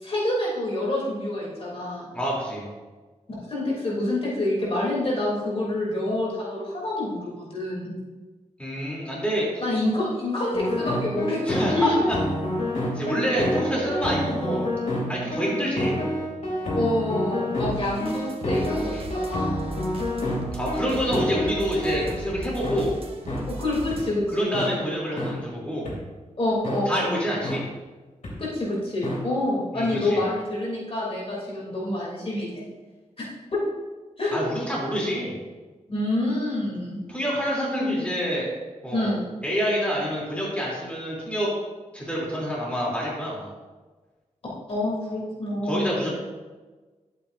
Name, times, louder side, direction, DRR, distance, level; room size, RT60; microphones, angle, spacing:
voice 1, 0.0-2.1 3.5-8.0 9.6-11.9 13.0-13.1 14.3-14.4 16.7-19.7 23.6-24.8 26.4-27.2 28.4-32.6 33.2-33.3 33.5-33.6 34.2-34.4 35.9-37.0 37.7-38.0 38.9-39.2 44.7-46.0, left 1 dB, 50° left, -5 dB, 3.1 m, -27 dB
voice 2, 2.1-2.7 8.6-9.6 11.4-12.2 12.9-14.7 15.1-16.0 18.9-19.0 20.5-22.9 24.3-25.9 26.9-27.6 29.7-30.2 34.3-35.4 37.1-38.5 38.8-39.1 39.4-41.5 41.9-43.5 45.6-46.1, equal, 10° left, -6 dB, 3.1 m, -27 dB
sound 1, 10.5-22.1 22.6-22.8 23.3-23.4 23.9-24.0 24.5-24.7 25.2-25.3 25.9-26.0 26.6-26.8 27.4-27.6 28.2-28.3 29.0-29.2, equal, 65° left, 2.7 m, -28 dB
sound 2, 17.6-24.1, right 1 dB, 45° right, 1.2 m, -37 dB
11.5 x 8.2 x 2.7 m, 1.3 s
wide cardioid pair, 90°, 13 cm